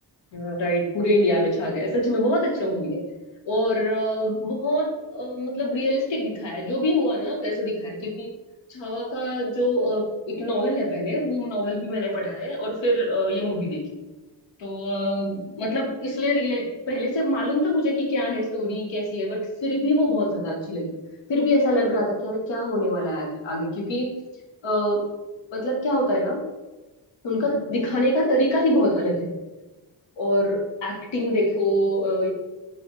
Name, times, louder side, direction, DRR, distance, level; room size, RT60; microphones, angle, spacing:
voice 1, 0.3-3.0 3.5-8.3 8.7-13.9 14.6-21.0 21.3-24.1 24.6-25.1 25.5-26.4 27.2-29.3 30.2-32.3, equal, 85° left, 1 dB, 0.8 m, -24 dB
4.0 x 2.0 x 3.0 m, 1.1 s
cardioid pair, 75°, 43 cm